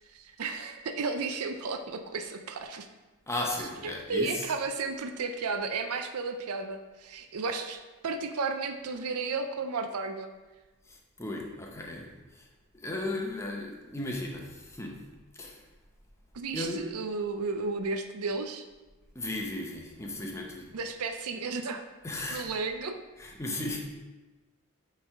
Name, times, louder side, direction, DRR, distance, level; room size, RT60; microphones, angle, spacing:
voice 1, 0.1-2.9 3.8-10.3 16.3-18.7 20.7-21.8 22.3-23.0, right 4 dB, 90° right, 6 dB, 0.5 m, -33 dB
voice 2, 3.3-4.4 10.9-12.4 12.7-15.0 15.3-15.6 16.5-16.9 19.1-20.7 22.0-22.6 23.2-23.8, left 2 dB, 15° left, 0 dB, 0.7 m, -36 dB
8.5 x 3.3 x 3.6 m, 1.2 s
head